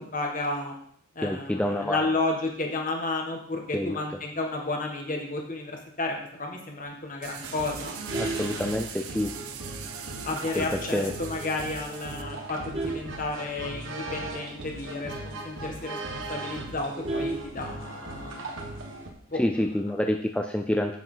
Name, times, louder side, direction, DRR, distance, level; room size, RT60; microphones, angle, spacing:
voice 1, 0.1-0.7 1.1-8.6 10.2-18.5 19.3-19.7, left 2 dB, 35° left, 2 dB, 1.7 m, -32 dB
voice 2, 1.2-2.1 3.7-4.0 8.2-9.3 10.6-11.1 19.3-21.0, left 1 dB, 5° left, 4 dB, 0.4 m, -27 dB
sound 1, 7.2-12.2, right 8 dB, 75° right, 0.9 m, -42 dB
sound 2, 7.4-19.1, right 2 dB, 55° right, 1.5 m, -38 dB
Vehicle horn car horn honking, 7.8-9.3 9.8-10.0 10.3-10.4 10.8-10.9 11.2-11.6 12.2-14.0 14.4-14.5 14.7-14.8 15.2-15.3 15.7-15.8 16.1-18.1 19.3-19.7, right 2 dB, 25° right, 1.4 m, -35 dB
9.1 x 8.8 x 3.9 m, 0.67 s
head